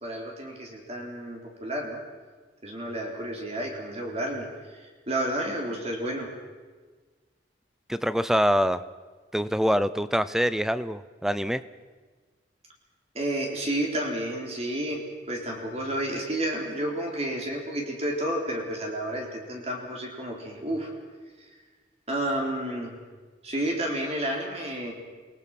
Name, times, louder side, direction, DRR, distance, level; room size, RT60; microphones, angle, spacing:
voice 1, 0.0-2.0 2.6-6.3 13.1-20.9 21.4-21.5 22.1-22.9 23.4-24.9, right 1 dB, 35° right, 0 dB, 3.9 m, -31 dB
voice 2, 7.9-8.8 9.3-11.6, equal, 5° right, 15 dB, 0.7 m, -25 dB
28.5 x 20.0 x 6.1 m, 1.4 s
head